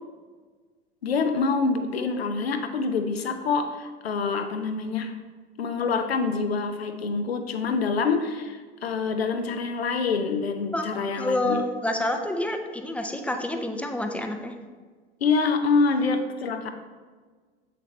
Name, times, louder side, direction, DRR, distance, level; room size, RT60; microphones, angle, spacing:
voice 1, 1.0-5.1 5.6-11.6 15.2-16.7, left 4 dB, 75° left, 6 dB, 0.8 m, -26 dB
voice 2, 10.7-14.6, left 1 dB, 5° left, 5 dB, 0.6 m, -28 dB
7.7 x 6.8 x 3.2 m, 1.5 s
figure-of-eight pair, 75°, 31 cm